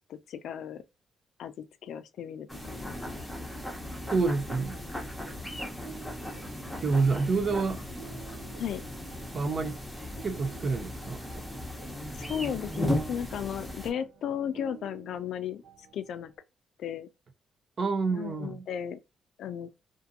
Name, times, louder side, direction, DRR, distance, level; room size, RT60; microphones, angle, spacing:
voice 1, 0.1-0.8 1.4-3.5 8.6-8.8 12.2-15.6 15.9-16.3 16.8-17.1 18.1-19.0 19.4-19.7, left 9 dB, 70° left, 0.3 m, -35 dB
sound 1, 2.5-13.9, left 1 dB, ahead, 0.9 m, -37 dB
voice 2, 4.1-4.8 6.8-7.8 9.3-9.7 10.2-11.4 17.8-18.6, right 4 dB, 45° right, 0.5 m, -28 dB
sound 2, 4.7-16.4, right 7 dB, 90° right, 0.7 m, -53 dB
2.5 x 2.5 x 2.6 m
cardioid pair, 90°, 0 cm